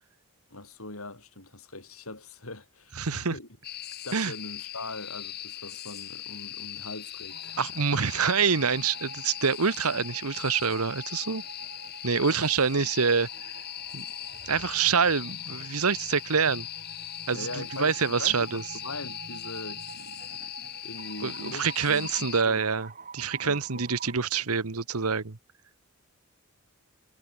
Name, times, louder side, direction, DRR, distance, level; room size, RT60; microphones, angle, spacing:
voice 1, 0.5-3.5 4.0-7.6 12.2-12.3 17.3-22.6 23.4-24.2, left 2 dB, 75° left, 6.5 m, -42 dB
voice 2, 3.0-3.3 4.1-4.3 7.6-11.4 12.0-13.3 13.9-14.0 14.5-16.7 17.3-18.6 21.2-25.4, right 5 dB, 85° right, 1.2 m, -26 dB
sound 1, 3.6-22.4, left 12 dB, 45° left, 2.0 m, -40 dB
sound 2, 7.3-24.1, right 4 dB, 35° right, 3.7 m, -47 dB
head